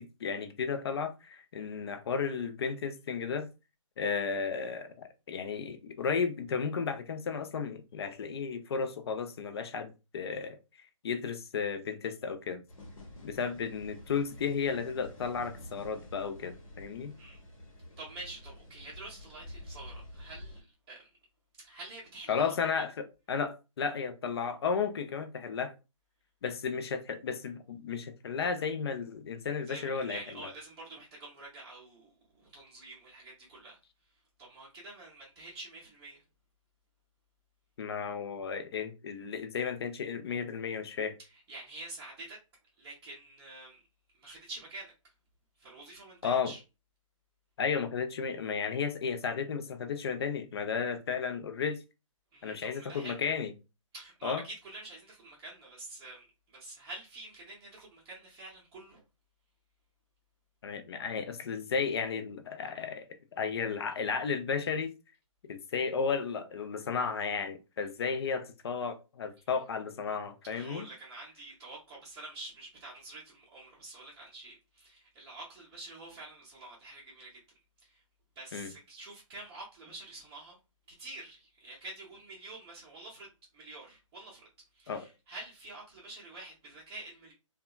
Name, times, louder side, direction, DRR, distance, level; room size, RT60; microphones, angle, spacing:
voice 1, 0.0-3.5 4.0-10.6 11.0-12.6 13.2-17.1 22.3-25.7 26.4-30.2 37.8-41.2 46.2-46.5 47.6-51.8 52.4-53.5 54.2-54.4 60.6-64.9 65.5-70.9 78.5-78.7 84.9-85.1, left 6 dB, 50° left, 0.5 m, -33 dB
sound 1, 12.7-20.6, left 1 dB, 90° left, 1.0 m, -49 dB
voice 2, 18.0-21.1 21.6-22.8 29.7-33.8 34.4-36.2 41.2-42.4 42.8-43.8 44.2-44.9 45.6-46.6 52.3-53.2 53.9-59.0 70.5-77.3 77.8-78.0 78.4-80.6 81.0-84.5 84.7-87.3, right 2 dB, 15° right, 0.6 m, -47 dB
2.7 x 2.2 x 2.2 m
hypercardioid pair, 150°, 17 cm